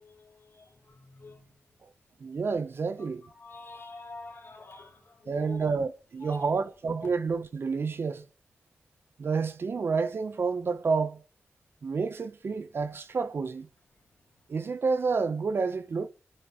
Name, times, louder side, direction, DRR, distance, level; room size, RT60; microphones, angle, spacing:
voice 1, 0.0-1.5 3.4-5.6 6.2-6.5, left 3 dB, 60° left, 3.1 m, -46 dB
voice 2, 2.2-3.2 5.3-8.2 9.2-11.2 11.8-13.7 14.5-16.1, right 4 dB, 60° right, 0.9 m, -29 dB
26.0 x 9.1 x 3.1 m
wide cardioid pair, 80°, 4 cm